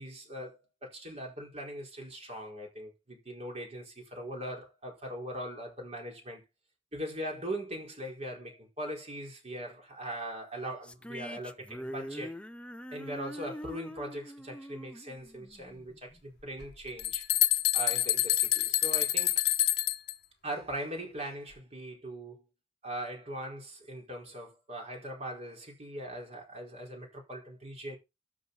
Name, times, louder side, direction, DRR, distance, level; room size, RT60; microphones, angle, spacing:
voice 1, 0.0-6.4 6.9-12.3 12.9-17.3 17.7-19.4 20.4-22.4 22.8-28.0, right 1 dB, 35° right, 4.7 m, -40 dB
sound 1, 10.8-16.2, equal, 5° left, 0.6 m, -44 dB
sound 2, 16.6-16.7 17.0-20.1, left 14 dB, 60° left, 1.1 m, -27 dB
12.5 x 7.6 x 4.0 m
head